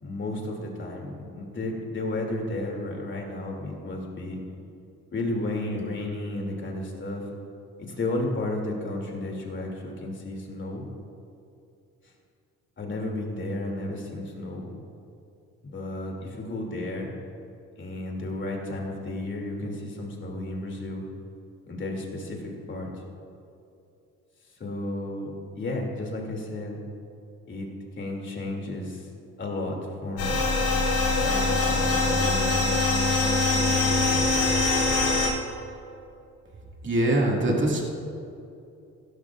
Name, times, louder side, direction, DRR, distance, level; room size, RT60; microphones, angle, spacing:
voice 1, 0.0-4.4 5.1-7.2 7.8-10.8 12.8-14.7 15.6-17.1 17.8-21.0 21.7-22.9 24.6-26.8 27.5-27.7 28.0-29.0 29.4-30.3 31.1-32.7, left 2 dB, 40° left, 0 dB, 2.8 m, -33 dB
sound 1, 30.2-35.3, left 3 dB, 85° left, 3.2 m, -23 dB
voice 2, 36.8-37.8, right 1 dB, 40° right, -2 dB, 2.3 m, -23 dB
16.0 x 13.0 x 2.5 m, 2.6 s
cardioid pair, 90°, 30 cm